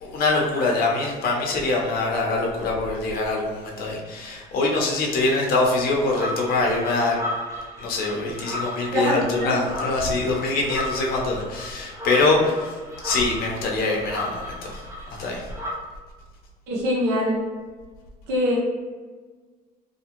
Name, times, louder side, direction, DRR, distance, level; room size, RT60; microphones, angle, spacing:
voice 1, 0.0-7.2 7.8-12.7 13.0-14.8 15.1-15.5, left 3 dB, 60° left, -1 dB, 0.7 m, -24 dB
sound 1, 6.1-15.7, left 1 dB, 15° right, 0.5 m, -35 dB
voice 2, 8.9-9.5 16.7-17.4 18.3-18.6, equal, 85° right, -4 dB, 0.7 m, -23 dB
2.5 x 2.3 x 2.9 m, 1.4 s
cardioid pair, 110°, 17 cm